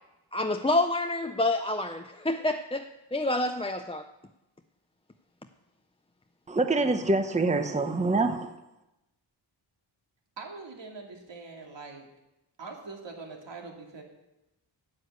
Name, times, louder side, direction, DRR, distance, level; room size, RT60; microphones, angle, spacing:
voice 1, 0.3-4.1, left 2 dB, 15° left, 5 dB, 0.5 m, -28 dB
voice 2, 6.5-8.5, right 3 dB, 15° right, 8 dB, 0.8 m, -25 dB
voice 3, 10.4-12.1 12.6-14.0, right 4 dB, 65° right, 1 dB, 2.5 m, -43 dB
9.7 x 8.4 x 8.1 m, 0.95 s
wide cardioid pair, 90°, 47 cm